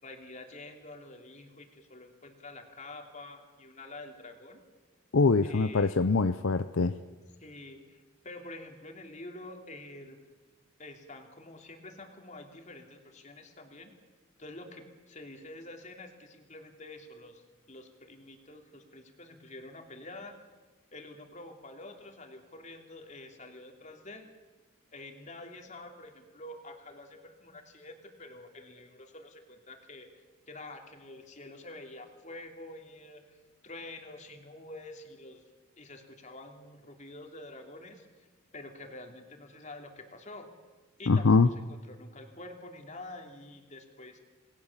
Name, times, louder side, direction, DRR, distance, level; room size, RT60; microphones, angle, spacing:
voice 1, 0.0-4.6 5.4-6.0 7.4-10.2 10.8-13.9 14.4-20.4 20.9-24.3 24.9-30.1 30.5-35.4 35.8-38.3 38.5-40.5 41.0-44.2, left 2 dB, 35° left, 4 dB, 2.9 m, -47 dB
voice 2, 5.1-6.9 41.1-41.5, left 4 dB, 65° left, 11 dB, 0.6 m, -23 dB
28.5 x 20.0 x 7.3 m, 1.3 s
head